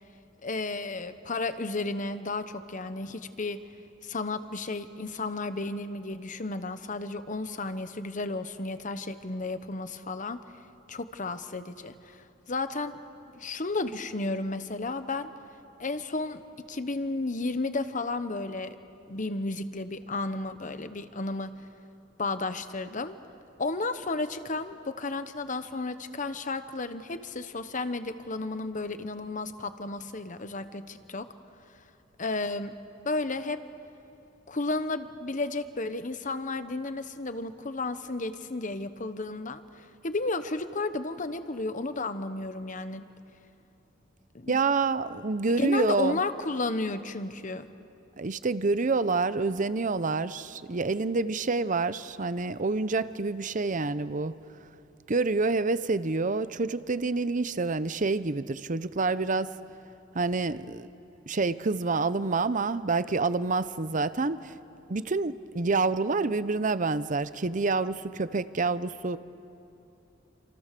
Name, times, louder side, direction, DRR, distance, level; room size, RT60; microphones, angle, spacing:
voice 1, 0.4-3.6 4.0-10.4 10.9-13.0 13.3-15.3 15.8-16.4 16.7-18.8 19.1-21.5 22.2-23.2 23.6-31.3 32.2-32.7 33.0-33.6 34.5-39.6 40.0-43.0 44.3-44.6 45.5-47.7, left 3 dB, 45° left, 11 dB, 1.1 m, -33 dB
voice 2, 44.5-46.2 48.2-54.3 55.1-59.5 60.1-60.9 61.3-64.5 64.9-69.2, right 3 dB, 45° right, 14 dB, 0.7 m, -27 dB
28.5 x 27.0 x 6.8 m, 2.8 s
head